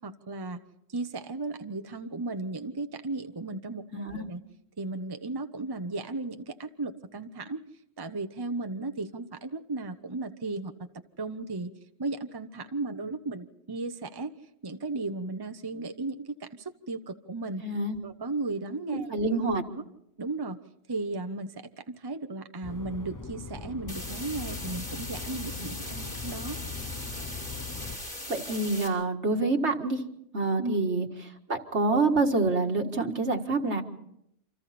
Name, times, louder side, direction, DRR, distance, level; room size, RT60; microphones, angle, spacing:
voice 1, 0.0-0.6 0.9-4.4 4.8-7.6 8.0-10.9 11.2-11.7 12.0-14.3 14.6-17.6 18.0-19.8 20.2-20.6 20.9-21.5 21.9-26.6 30.6-30.8, right 3 dB, 20° right, 7 dB, 0.9 m, -35 dB
voice 2, 3.9-4.2 17.6-18.0 18.9-19.6 28.3-30.0 30.3-31.1 31.5-33.8, right 3 dB, 70° right, 4 dB, 2.1 m, -27 dB
sound 1, 22.6-28.0, left 5 dB, 20° left, 0.8 m, -40 dB
sound 2, 23.9-28.9, left 1 dB, 50° left, 5.9 m, -39 dB
28.5 x 26.0 x 4.3 m, 0.78 s
omnidirectional pair, 1.2 m